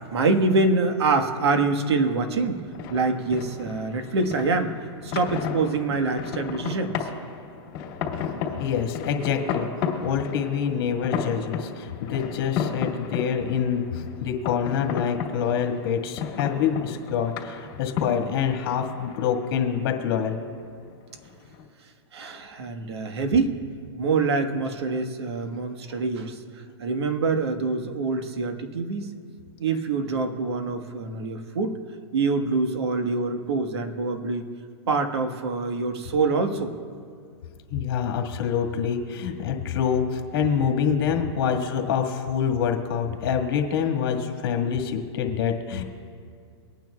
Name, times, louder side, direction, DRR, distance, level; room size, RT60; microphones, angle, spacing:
voice 1, 0.1-2.6 2.9-4.7 5.0-7.0 22.1-23.6 24.0-26.4 26.8-29.1 29.6-31.8 32.1-34.4 34.9-36.7, right 3 dB, 75° right, 6 dB, 1.5 m, -25 dB
sound 1, 2.3-21.6, left 7 dB, 40° left, 2.5 m, -34 dB
voice 2, 8.6-9.7 10.0-20.4 37.7-45.8, left 7 dB, 55° left, 2 dB, 1.8 m, -26 dB
25.5 x 9.2 x 2.3 m, 2.3 s
hypercardioid pair, 150°, 14 cm